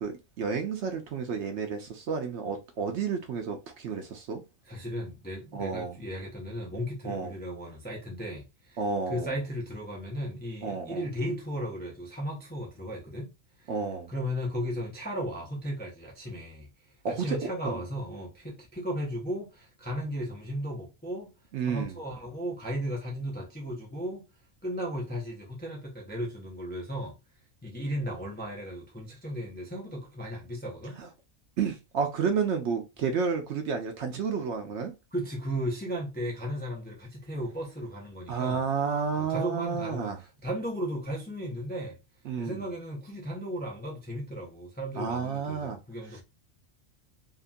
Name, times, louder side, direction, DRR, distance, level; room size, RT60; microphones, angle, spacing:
voice 1, 0.0-4.4 5.5-6.0 7.0-7.3 8.8-9.3 10.6-11.0 13.7-14.1 17.0-17.8 21.5-21.9 31.0-31.1 31.6-34.9 38.3-40.2 42.3-42.6 44.9-45.8, right 5 dB, 65° right, 0.8 m, -31 dB
voice 2, 4.7-8.8 9.1-13.3 13.6-13.7 14.1-16.7 17.1-21.3 21.6-24.3 24.6-27.2 27.6-31.0 35.1-38.6 39.1-42.0 42.4-46.2, equal, 10° left, 0.4 m, -35 dB
2.9 x 2.4 x 2.5 m
omnidirectional pair, 1.4 m